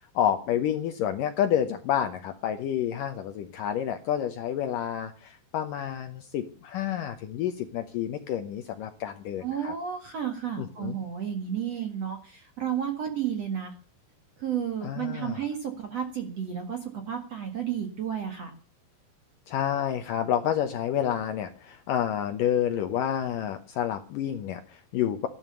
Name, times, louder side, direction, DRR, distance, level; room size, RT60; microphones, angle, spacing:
voice 1, 0.2-9.7 10.6-11.0 14.8-15.4 19.5-25.3, left 10 dB, 85° left, 7 dB, 1.8 m, -29 dB
voice 2, 9.4-13.7 14.4-16.8 17.1-18.5, right 9 dB, 50° right, 5 dB, 2.0 m, -32 dB
14.5 x 12.5 x 6.8 m, 0.38 s
omnidirectional pair, 5.4 m